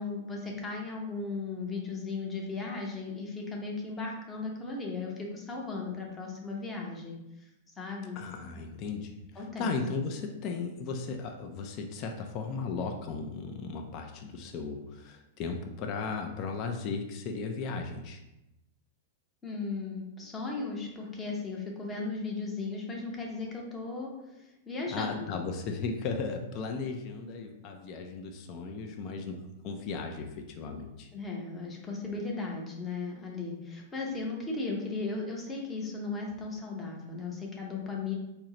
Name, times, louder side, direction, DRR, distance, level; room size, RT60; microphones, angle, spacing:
voice 1, 0.0-7.2 7.8-8.5 9.4-9.7 19.4-25.7 31.1-38.1, left 3 dB, 15° left, -1 dB, 0.7 m, -36 dB
voice 2, 8.2-18.2 24.9-31.1, left 4 dB, 35° left, 3 dB, 0.4 m, -36 dB
4.3 x 2.1 x 3.8 m, 0.93 s
supercardioid pair, 150°, 0 cm